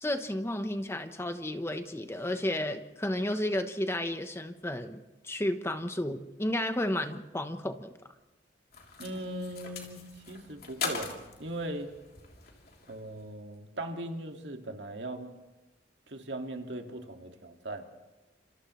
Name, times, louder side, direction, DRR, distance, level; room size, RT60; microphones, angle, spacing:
voice 1, 0.0-7.9, left 1 dB, 15° left, 8 dB, 1.0 m, -32 dB
sound 1, 8.7-13.4, left 5 dB, 55° left, 3.3 m, -41 dB
voice 2, 9.0-11.9 12.9-15.3 16.1-17.8, right 1 dB, 85° right, 3 dB, 2.0 m, -39 dB
30.0 x 27.0 x 3.2 m, 1.1 s
head